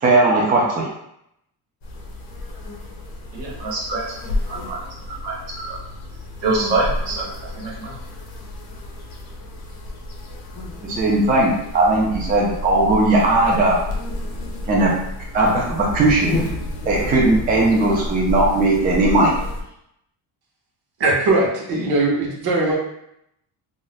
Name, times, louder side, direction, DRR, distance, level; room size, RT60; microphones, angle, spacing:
voice 1, 0.0-0.8 10.8-13.8 14.7-14.9 15.3-16.6 16.9-19.3, right 2 dB, 20° right, -3 dB, 0.4 m, -18 dB
sound 1, 1.8-19.6, left 2 dB, 55° left, 0.7 m, -31 dB
voice 2, 3.3-4.8 5.1-5.8 6.4-8.0, right 3 dB, 85° right, -4 dB, 1.2 m, -26 dB
voice 3, 21.0-22.7, right 2 dB, 55° right, -3 dB, 0.9 m, -19 dB
2.5 x 2.1 x 3.9 m, 0.78 s
cardioid pair, 170°, 43 cm